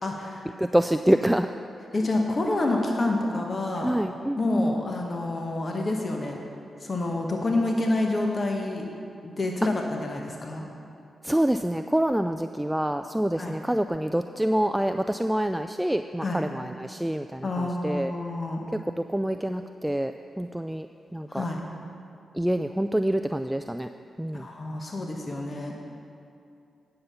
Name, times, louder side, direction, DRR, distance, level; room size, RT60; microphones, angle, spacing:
voice 1, 0.0-0.6 1.9-4.0 4.4-6.4 6.8-8.9 9.2-10.7 13.4-13.6 16.2-16.4 17.4-18.6 21.3-21.6 24.3-25.8, left 2 dB, 45° left, 1 dB, 1.1 m, -28 dB
voice 2, 0.6-1.5 3.8-4.7 11.2-18.1 19.0-20.9 21.1-21.4 22.3-23.9 24.2-24.5, right 1 dB, 10° right, 8 dB, 0.3 m, -26 dB
9.6 x 5.7 x 6.8 m, 2.6 s
supercardioid pair, 45°, 0 cm